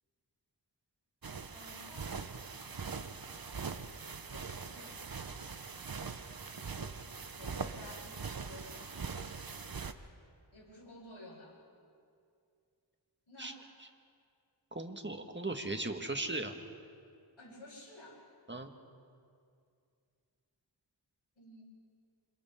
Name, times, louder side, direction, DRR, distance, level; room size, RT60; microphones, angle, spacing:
sound 1, 1.2-9.9, right 5 dB, 50° right, 0.9 m, -42 dB
voice 1, 1.5-2.1 2.7-3.1 4.3-5.5 7.3-9.1 10.5-11.6 13.3-13.6 17.4-18.2 21.4-21.6, left 1 dB, 90° left, -5 dB, 5.8 m, -53 dB
voice 2, 14.7-16.5 18.5-18.7, right 2 dB, 25° right, 5 dB, 1.6 m, -37 dB
27.0 x 27.0 x 3.7 m, 2.4 s
wide cardioid pair, 45°, 46 cm